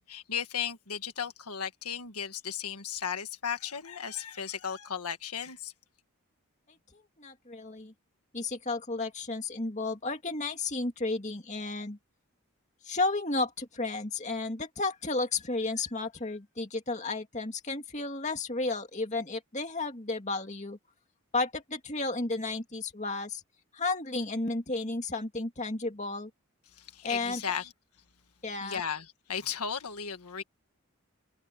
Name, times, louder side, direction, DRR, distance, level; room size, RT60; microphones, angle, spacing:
voice 1, 0.1-5.7 26.8-27.7 28.6-30.4, left 7 dB, 90° left, 1.7 m, -35 dB
voice 2, 6.9-7.9 8.3-12.0 12.8-20.8 21.3-23.4 23.7-26.3 27.0-27.4 28.4-28.8, left 3 dB, 30° left, 2.4 m, -33 dB
head